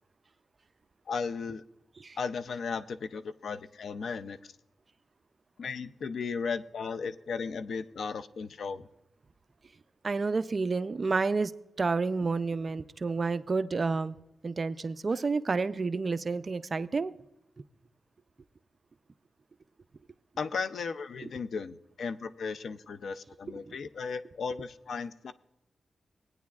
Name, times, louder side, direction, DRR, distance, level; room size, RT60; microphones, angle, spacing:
voice 1, 1.1-1.6 2.2-4.5 5.6-8.9 20.4-25.3, left 5 dB, 75° left, 12 dB, 0.4 m, -35 dB
voice 2, 10.0-11.5 11.8-14.1 14.4-17.1 21.2-21.3 23.7-23.8, right 4 dB, 40° right, 13 dB, 0.4 m, -30 dB
18.0 x 9.3 x 2.3 m, 0.87 s
wide cardioid pair, 110°, 0 cm